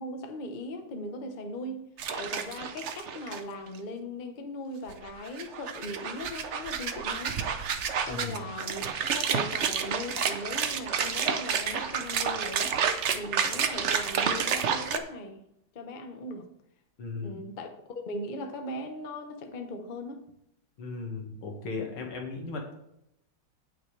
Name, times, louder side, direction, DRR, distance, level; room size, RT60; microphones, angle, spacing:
voice 1, 0.0-7.4 8.0-12.7 13.1-15.4 15.7-16.5 17.1-20.2, left 1 dB, 35° left, 5 dB, 0.8 m, -39 dB
sound 1, 2.0-3.4 3.7-3.8 4.9-15.0, right 7 dB, 85° right, 0.6 m, -30 dB
voice 2, 8.1-8.4 17.0-17.5 20.8-22.7, left 3 dB, 90° left, 1 dB, 2.6 m, -37 dB
16.0 x 6.0 x 3.3 m, 0.79 s
omnidirectional pair, 2.2 m